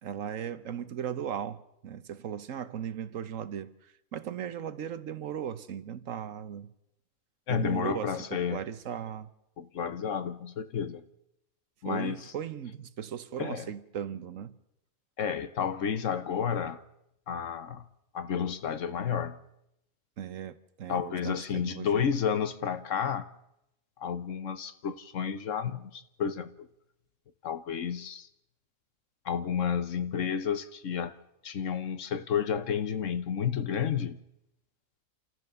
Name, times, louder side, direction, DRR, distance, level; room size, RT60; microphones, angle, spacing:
voice 1, 0.0-6.7 7.5-9.3 11.8-14.5 20.2-22.1, right 9 dB, 70° right, 1.3 m, -37 dB
voice 2, 7.5-8.6 9.6-11.0 11.8-12.2 13.4-13.7 15.2-16.8 17.3-17.9 18.1-19.4 20.9-23.3 24.0-26.7 27.4-28.3 29.2-31.1 31.4-34.2, left 7 dB, 65° left, 1.3 m, -31 dB
27.5 x 14.0 x 6.9 m
omnidirectional pair, 1.4 m